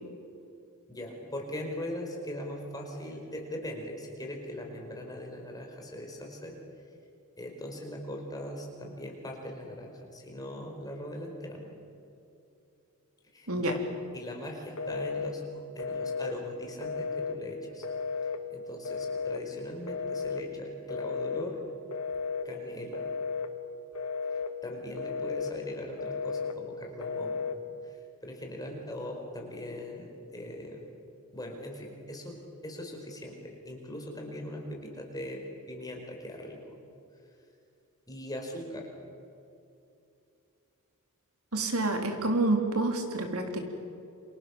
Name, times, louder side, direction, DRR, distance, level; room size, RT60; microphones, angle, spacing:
voice 1, 0.9-6.6 7.4-11.7 13.3-13.8 14.1-17.8 18.5-21.6 22.4-23.0 24.3-27.4 28.2-30.8 31.3-36.7 38.1-38.9, left 1 dB, 15° left, 1 dB, 5.0 m, -40 dB
Telephone, 14.8-15.3 15.8-16.4 16.8-17.4 17.8-18.4 18.9-19.4 19.9-20.4 20.9-21.5 21.9-22.5 22.9-23.5 24.0-24.5 24.9-25.5 26.0-26.6 27.0-27.6, left 4 dB, 85° left, 2.0 m, -34 dB
voice 2, 41.5-43.6, right 2 dB, 75° right, 4 dB, 3.9 m, -28 dB
29.0 x 27.0 x 7.4 m, 2.7 s
head